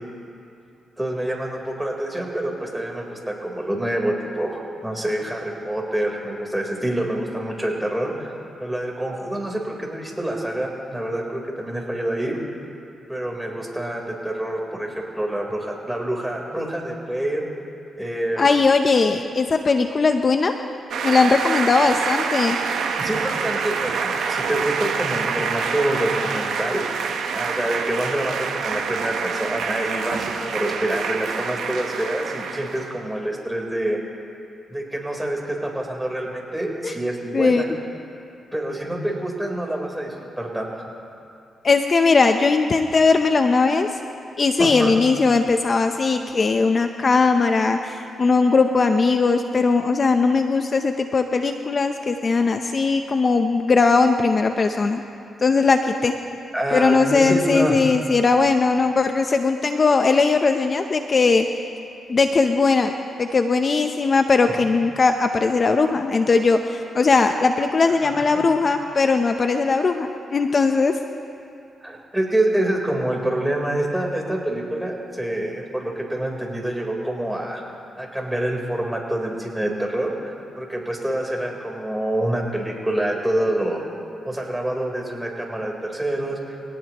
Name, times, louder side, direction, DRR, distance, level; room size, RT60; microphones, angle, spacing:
voice 1, 1.0-8.3 8.6-12.4 13.1-17.4 18.0-18.5 23.0-26.8 27.3-34.0 34.7-37.7 38.5-40.8 44.6-44.9 56.5-57.8 64.5-64.6 68.0-68.5 71.8-77.6 78.0-83.8 84.2-86.6, right 1 dB, 10° right, -1 dB, 4.0 m, -26 dB
voice 2, 18.4-20.5 21.0-22.6 36.8-36.9 37.3-37.6 41.6-43.9 44.4-55.0 55.4-56.1 56.7-61.5 62.1-70.9, left 4 dB, 45° left, 6 dB, 0.7 m, -19 dB
sound 1, 20.9-33.0, right 5 dB, 85° right, 1.1 m, -26 dB
24.5 x 18.5 x 3.1 m, 2.6 s
cardioid pair, 70°, 0 cm